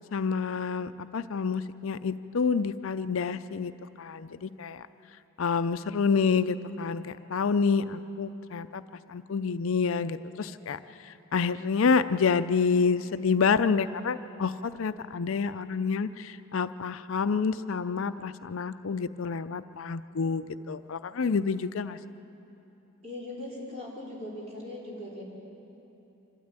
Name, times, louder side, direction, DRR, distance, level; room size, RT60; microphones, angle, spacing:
voice 1, 0.1-3.7 4.0-4.8 5.4-8.8 9.1-10.8 11.3-22.0, left 5 dB, 65° left, 12 dB, 0.5 m, -28 dB
voice 2, 23.0-25.2, left 1 dB, 30° right, -6 dB, 4.8 m, -40 dB
25.5 x 13.0 x 8.9 m, 3.0 s
head